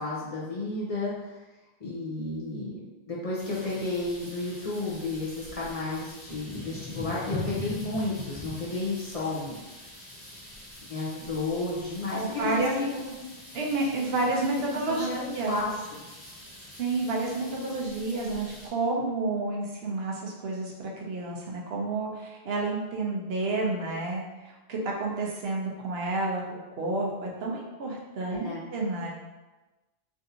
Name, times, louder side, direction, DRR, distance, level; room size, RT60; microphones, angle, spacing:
voice 1, 0.0-1.4 1.8-2.8 3.1-9.6 10.9-13.1 14.3-14.4 14.9-15.7 28.3-28.6, left 2 dB, 40° left, -7 dB, 0.6 m, -32 dB
sound 1, 3.4-18.7, left 2 dB, 85° left, 1.5 m, -43 dB
voice 2, 12.1-12.8 13.5-15.6 16.8-26.4 26.8-29.1, right 2 dB, 70° right, -2 dB, 0.9 m, -30 dB
3.5 x 2.5 x 2.7 m, 1.1 s
omnidirectional pair, 1.1 m